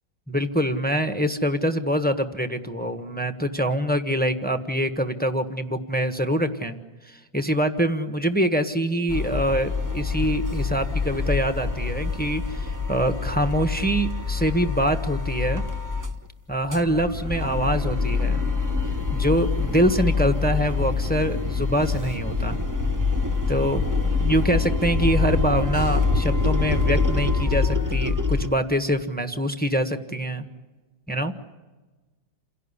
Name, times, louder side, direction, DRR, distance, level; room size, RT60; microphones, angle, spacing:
voice 1, 0.3-6.8 7.0-15.6 16.5-18.4 19.1-22.6 23.5-23.8 24.2-30.4 31.1-31.3, equal, 5° left, 8 dB, 1.1 m, -24 dB
sound 1, 9.1-16.2 16.5-28.5, left 4 dB, 15° right, 0.9 m, -25 dB
29.0 x 17.0 x 9.8 m, 1.2 s
omnidirectional pair, 1.9 m